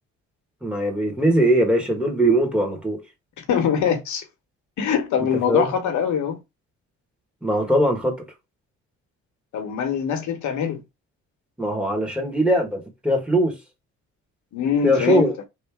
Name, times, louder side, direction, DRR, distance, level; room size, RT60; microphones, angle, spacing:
voice 1, 0.6-3.0 5.5-5.6 7.4-8.1 11.6-13.5 14.8-15.3, right 1 dB, 5° right, 1.4 m, -20 dB
voice 2, 3.4-4.2 4.8-6.4 9.5-10.8 14.5-15.3, left 7 dB, 75° left, 1.0 m, -23 dB
3.2 x 2.6 x 3.4 m
cardioid pair, 90°, 30 cm